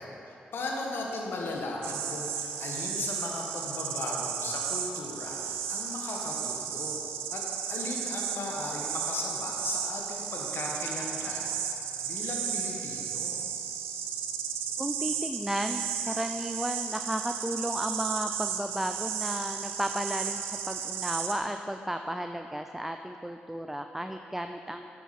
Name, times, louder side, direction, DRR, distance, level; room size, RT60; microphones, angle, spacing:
voice 1, 0.0-7.0 7.3-7.4 7.7-11.5 12.0-13.4, left 2 dB, 65° left, -1 dB, 1.5 m, -37 dB
sound 1, 1.8-21.4, right 8 dB, 90° right, 0.5 m, -34 dB
voice 2, 14.8-24.9, right 1 dB, 5° right, 6 dB, 0.4 m, -33 dB
9.2 x 7.8 x 4.3 m, 2.9 s
hypercardioid pair, 40°, 4 cm